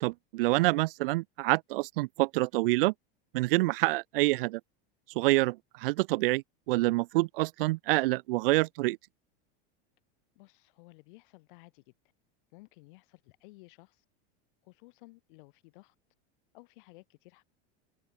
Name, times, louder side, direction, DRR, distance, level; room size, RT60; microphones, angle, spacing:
voice 1, 0.0-2.9 3.3-4.6 5.1-9.0, right 21 dB, 60° right, 0.7 m, -27 dB
voice 2, 10.4-11.9 12.5-14.1 14.6-16.0 16.5-17.4, left 24 dB, 55° left, 7.3 m, -55 dB
open air
supercardioid pair, 180°, 32 cm